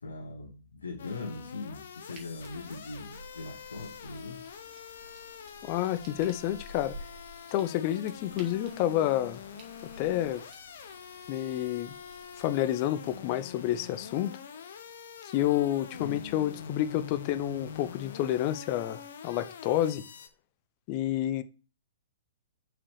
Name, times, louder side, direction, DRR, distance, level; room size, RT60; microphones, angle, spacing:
voice 1, 0.0-4.4 16.0-16.3, left 3 dB, 75° left, 1.4 m, -41 dB
sound 1, 1.0-20.3, left 7 dB, 60° left, 1.0 m, -45 dB
sound 2, 2.1-12.6, right 1 dB, 35° right, 2.4 m, -52 dB
voice 2, 5.6-6.9 7.5-9.4 10.0-10.4 11.3-12.0 12.4-14.3 15.2-20.0 20.9-21.4, left 12 dB, 40° left, 0.7 m, -29 dB
7.3 x 5.0 x 4.8 m
figure-of-eight pair, 115°, 0 cm